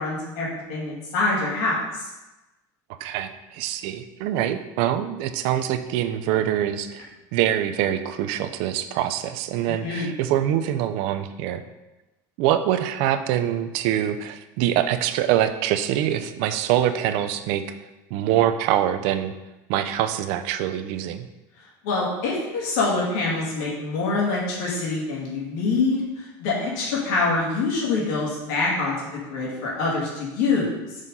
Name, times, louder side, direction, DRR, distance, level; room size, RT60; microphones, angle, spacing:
voice 1, 0.0-2.1 9.8-10.1 21.6-28.9 29.3-30.7, left 3 dB, 80° left, -6 dB, 2.2 m, -25 dB
voice 2, 3.0-11.6 12.4-17.6 18.1-19.3 19.7-21.3, right 11 dB, 70° right, 9 dB, 0.5 m, -24 dB
6.4 x 3.8 x 5.4 m, 1.0 s
cardioid pair, 145°, 10 cm